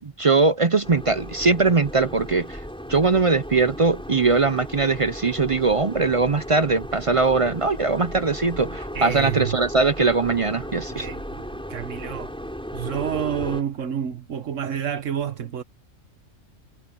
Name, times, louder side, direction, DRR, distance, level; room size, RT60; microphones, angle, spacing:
voice 1, 0.0-2.6 2.9-11.1, right 4 dB, 40° right, 0.5 m, -21 dB
sound 1, 0.8-13.6, equal, 5° left, 5.8 m, -36 dB
voice 2, 8.9-9.6 11.0-12.3 12.7-15.6, right 9 dB, 80° right, 1.5 m, -29 dB
omnidirectional pair, 1.3 m